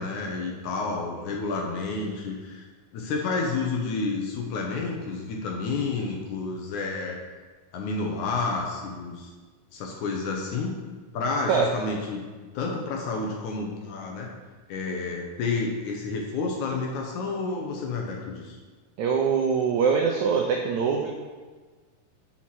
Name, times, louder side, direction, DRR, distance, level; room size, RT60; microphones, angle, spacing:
voice 1, 0.0-2.7 2.9-7.2 7.7-9.3 9.7-10.7 11.1-12.2 12.5-14.3 14.7-18.6, left 3 dB, 70° left, 0 dB, 2.1 m, -30 dB
voice 2, 19.0-21.1, right 6 dB, 85° right, 1 dB, 1.6 m, -23 dB
6.2 x 5.7 x 6.0 m, 1.4 s
omnidirectional pair, 4.1 m